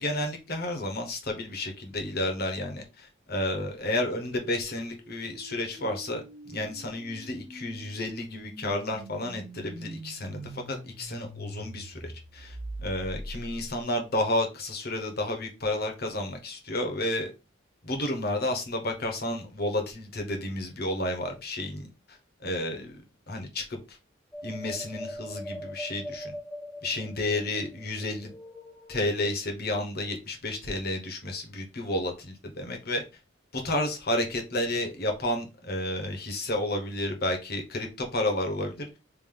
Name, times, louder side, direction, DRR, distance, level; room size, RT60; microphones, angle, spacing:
voice 1, 0.0-12.6 12.8-17.3 17.8-21.9 22.4-23.0 23.3-23.8 24.4-26.3 26.8-28.4 28.9-33.0 33.5-38.9, left 1 dB, 50° left, 4 dB, 1.0 m, -31 dB
sound 1, 3.8-13.8, right 1 dB, 75° right, 1.1 m, -44 dB
sound 2, 24.3-29.3, equal, 5° left, 0.9 m, -41 dB
3.5 x 2.6 x 3.6 m, 0.28 s
head